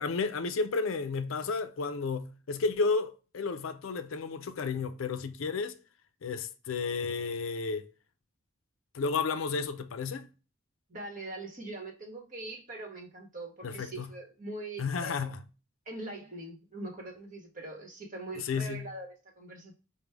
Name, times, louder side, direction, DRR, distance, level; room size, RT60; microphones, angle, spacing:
voice 1, 0.0-5.8 6.2-7.9 8.9-10.3 13.6-14.1 14.8-15.4 18.4-18.9, left 4 dB, 75° left, 0.5 m, -32 dB
voice 2, 10.9-15.3 15.9-19.1 19.4-19.7, right 2 dB, 40° right, 1.2 m, -42 dB
5.1 x 2.2 x 3.3 m
head